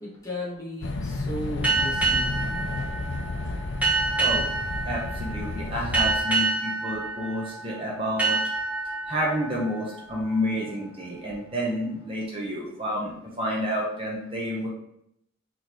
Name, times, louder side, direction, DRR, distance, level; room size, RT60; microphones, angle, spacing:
voice 1, 0.0-2.6, left 1 dB, 15° left, -7 dB, 1.2 m, -36 dB
sound 1, 0.8-6.2, left 2 dB, 60° left, 0.4 m, -32 dB
sound 2, 1.6-10.9, right 3 dB, 5° right, 1.0 m, -28 dB
voice 2, 4.8-8.4 9.1-14.7, equal, 25° right, -3 dB, 0.7 m, -29 dB
3.7 x 3.0 x 4.3 m, 0.75 s
head